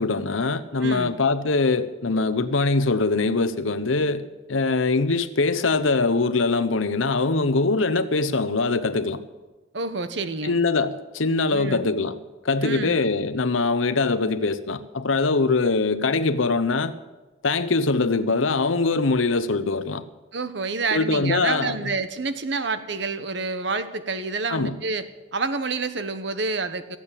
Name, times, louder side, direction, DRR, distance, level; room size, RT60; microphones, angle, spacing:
voice 1, 0.0-4.2 4.5-9.2 10.4-12.2 12.4-16.9 17.4-20.0 20.9-21.8 24.5-24.7, left 3 dB, 90° left, 0.9 m, -22 dB
voice 2, 0.8-1.2 9.7-10.6 11.5-11.9 12.6-13.0 20.3-25.0 25.3-27.0, right 3 dB, 65° right, 1.0 m, -28 dB
14.5 x 8.5 x 8.8 m
head